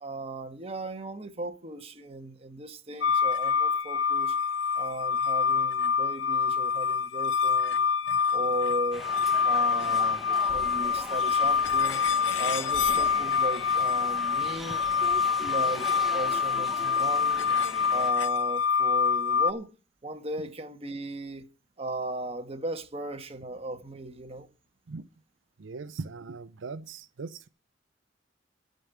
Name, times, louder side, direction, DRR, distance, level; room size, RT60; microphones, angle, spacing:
voice 1, 0.0-4.4 4.7-7.9 8.2-9.0 9.4-12.0 12.4-14.8 15.4-17.5 17.9-19.7 20.0-21.4 21.8-24.5, right 2 dB, 30° right, 1.4 m, -37 dB
sound 1, 3.0-19.5, left 6 dB, 70° left, 0.6 m, -26 dB
sound 2, 8.9-18.1, equal, ahead, 1.2 m, -41 dB
sound 3, 10.3-12.4 12.7-13.4, equal, 45° left, 3.8 m, -50 dB
voice 2, 25.6-27.5, right 4 dB, 85° right, 0.6 m, -40 dB
12.5 x 5.3 x 9.0 m
head